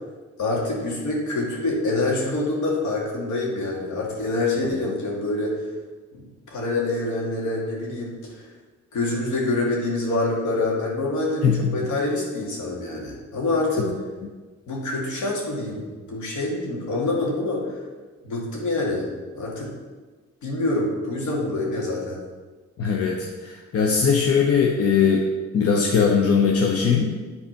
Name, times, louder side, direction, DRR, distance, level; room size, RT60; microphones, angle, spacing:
voice 1, 0.4-5.6 6.1-8.5 8.9-11.4 11.7-13.9 14.7-17.8 18.2-19.1 19.3-19.7 20.4-22.2, left 2 dB, 70° left, -2 dB, 2.5 m, -26 dB
voice 2, 11.4-11.9 22.8-25.2 25.5-27.2, left 6 dB, 50° left, 0 dB, 1.0 m, -20 dB
9.6 x 4.1 x 5.8 m, 1.4 s
cardioid pair, 90°, 30 cm